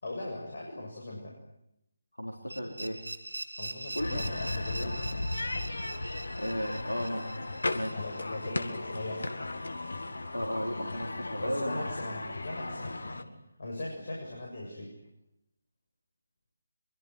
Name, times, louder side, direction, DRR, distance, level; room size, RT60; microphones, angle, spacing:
voice 1, 0.0-1.4 3.6-5.0 7.9-9.3 11.4-15.0, left 2 dB, 50° left, -1 dB, 7.3 m, -39 dB
voice 2, 2.2-3.0 3.9-4.1 6.4-7.3 7.7-8.0 10.3-12.1, equal, 85° left, 1 dB, 4.2 m, -34 dB
sound 1, 2.5-9.3, right 2 dB, 70° right, 2.3 m, -43 dB
sound 2, 4.0-13.2, left 2 dB, 65° left, 2.0 m, -36 dB
25.0 x 23.5 x 9.5 m, 0.81 s
figure-of-eight pair, 150°, 0 cm